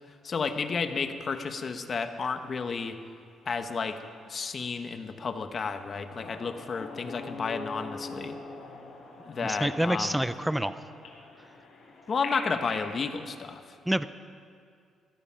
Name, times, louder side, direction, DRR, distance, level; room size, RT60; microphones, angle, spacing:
voice 1, 0.2-3.0 3.4-4.0 4.3-8.4 9.2-10.2 12.1-13.8, left 5 dB, 45° left, 8 dB, 1.1 m, -32 dB
sound 1, 6.1-12.9, left 2 dB, 60° left, 4.2 m, -43 dB
voice 2, 9.4-10.7 13.9-14.1, right 1 dB, 5° right, 13 dB, 0.6 m, -27 dB
15.0 x 14.0 x 5.8 m, 2.3 s
cardioid pair, 90°, 0 cm